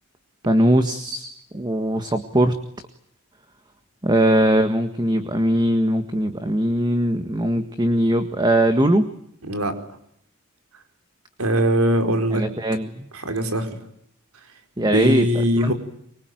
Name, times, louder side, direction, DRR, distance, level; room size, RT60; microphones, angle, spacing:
voice 1, 0.4-2.5 4.0-9.1 12.3-13.1 14.8-15.7, right 1 dB, 20° right, 8 dB, 1.7 m, -20 dB
voice 2, 9.4-9.7 11.4-12.4 13.1-13.7 14.8-15.7, equal, 80° right, 7 dB, 4.5 m, -21 dB
24.5 x 24.5 x 9.3 m, 0.72 s
head